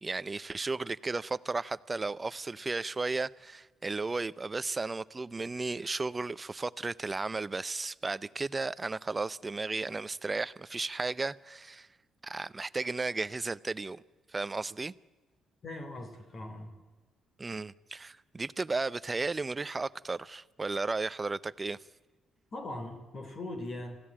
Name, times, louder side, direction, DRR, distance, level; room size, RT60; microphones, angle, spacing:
voice 1, 0.0-11.9 12.2-14.0 14.3-14.9 17.4-21.8, right 3 dB, 25° right, 0.6 m, -34 dB
voice 2, 15.6-16.7 22.5-24.0, left 1 dB, 40° left, 3.8 m, -40 dB
27.5 x 15.5 x 8.8 m
cardioid pair, 90°, 0 cm